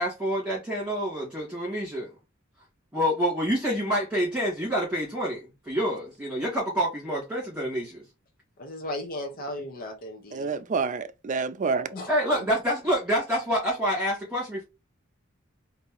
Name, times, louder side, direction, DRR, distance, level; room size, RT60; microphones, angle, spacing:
voice 1, 0.0-2.1 2.9-8.0 12.1-14.6, equal, 5° right, 2.4 m, -27 dB
voice 2, 8.6-10.5 11.9-12.1, left 1 dB, 45° left, 0.8 m, -36 dB
voice 3, 10.3-11.9, right 4 dB, 40° right, 0.4 m, -28 dB
4.1 x 2.7 x 3.9 m
head